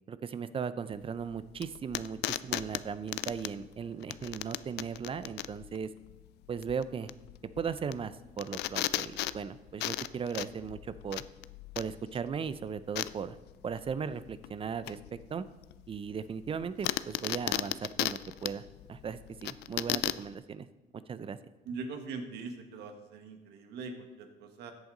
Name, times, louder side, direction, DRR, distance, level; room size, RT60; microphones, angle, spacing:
voice 1, 0.1-5.9 6.5-7.1 7.6-11.2 11.8-13.4 13.6-15.4 15.9-18.6 18.9-20.7 20.9-21.4, right 6 dB, 30° right, 14 dB, 0.6 m, -37 dB
sound 1, 0.9-20.3, left 15 dB, 75° left, 0.4 m, -37 dB
voice 2, 21.6-24.7, right 4 dB, 80° right, 5 dB, 1.6 m, -42 dB
14.0 x 8.0 x 3.9 m, 1.1 s
cardioid pair, 110°, 17 cm